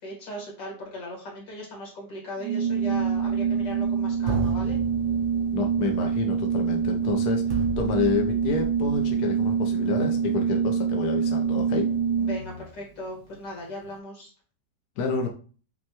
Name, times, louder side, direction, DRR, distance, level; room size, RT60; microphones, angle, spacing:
voice 1, 0.0-4.8 12.2-14.3, left 1 dB, 90° left, -2 dB, 2.3 m, -38 dB
Organ, 2.4-12.7, right 7 dB, 90° right, 1.2 m, -25 dB
sound 1, 2.9-3.9 4.3-9.1, right 3 dB, 65° right, 0.7 m, -35 dB
voice 2, 5.5-11.9 15.0-15.3, left 5 dB, 70° left, 2 dB, 1.2 m, -29 dB
6.3 x 2.2 x 2.9 m, 0.39 s
omnidirectional pair, 1.8 m